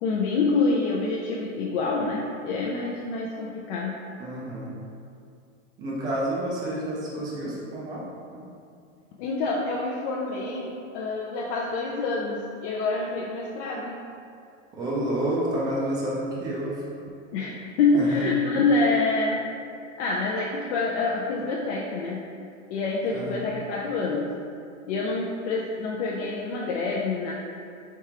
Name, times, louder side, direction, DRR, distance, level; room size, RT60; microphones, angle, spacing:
voice 1, 0.0-3.9 9.2-14.0 17.3-19.4 20.0-22.2 22.7-24.3 24.9-27.3, left 3 dB, 55° left, -3 dB, 0.5 m, -26 dB
voice 2, 4.2-4.7 5.8-8.1 8.3-8.4 14.7-16.8 18.0-18.2 23.1-23.4, right 1 dB, 10° right, -6 dB, 0.3 m, -29 dB
4.6 x 3.5 x 2.9 m, 2.5 s
hypercardioid pair, 140°, 40 cm